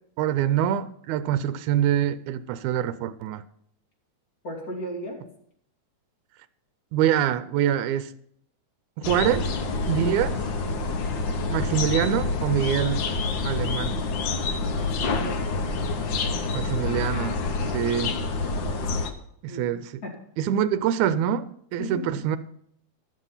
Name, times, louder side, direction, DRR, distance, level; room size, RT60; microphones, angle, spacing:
voice 1, 0.2-3.4 6.9-8.1 9.1-9.5 9.9-10.4 11.5-13.1 13.4-14.0 16.5-17.4 17.7-18.1 19.4-20.0 20.4-21.5 21.7-22.4, right 10 dB, 85° right, 2.0 m, -25 dB
voice 2, 4.4-5.2 14.8-15.5 19.5-19.7 20.0-20.1 21.8-22.0, equal, 30° left, 2.6 m, -35 dB
sound 1, 9.0-19.1, left 3 dB, 80° left, 1.0 m, -27 dB
12.0 x 7.3 x 5.6 m
omnidirectional pair, 3.4 m